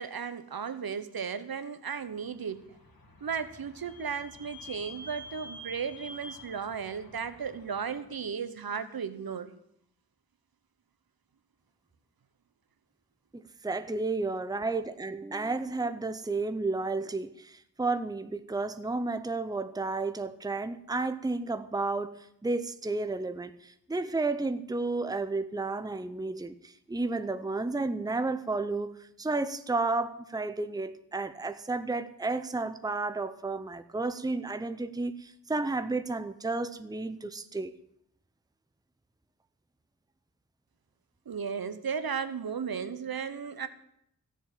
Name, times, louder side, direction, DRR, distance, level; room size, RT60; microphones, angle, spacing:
voice 1, 0.0-2.7 3.2-9.5 41.3-43.7, right 6 dB, 75° right, 11 dB, 1.2 m, -35 dB
Vehicle / Squeak, 2.4-8.0, left 1 dB, 70° left, 3.3 m, -48 dB
voice 2, 13.3-22.2 22.4-37.7, right 3 dB, 10° right, 11 dB, 0.7 m, -32 dB
15.5 x 7.2 x 9.1 m, 0.73 s
wide cardioid pair, 105°, 36 cm